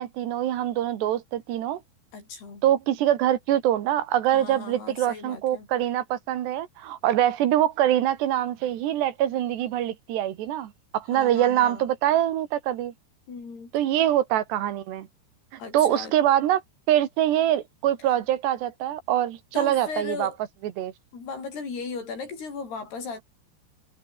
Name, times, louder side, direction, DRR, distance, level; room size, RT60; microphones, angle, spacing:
voice 1, 0.0-1.8 2.6-12.9 13.7-15.1 15.5-16.6 16.9-20.3 20.8-20.9, right 12 dB, 80° right, 3.9 m, -24 dB
voice 2, 2.1-2.7 4.3-5.7 11.1-11.9 13.3-13.7 15.6-16.2 19.5-20.4 21.1-23.2, left 4 dB, 70° left, 9.0 m, -37 dB
omnidirectional pair, 4.8 m